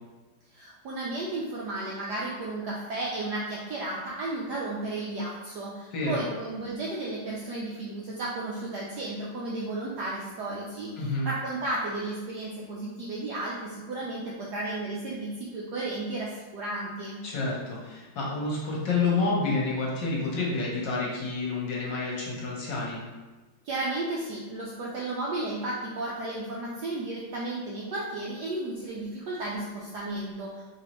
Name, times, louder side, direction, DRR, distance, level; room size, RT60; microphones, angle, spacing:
voice 1, 0.5-17.2 23.6-30.6, right 2 dB, 75° right, -4 dB, 0.9 m, -33 dB
voice 2, 5.9-6.2 11.0-11.3 17.2-23.0, left 3 dB, 65° left, -3 dB, 1.4 m, -29 dB
3.9 x 3.4 x 3.0 m, 1.2 s
omnidirectional pair, 2.3 m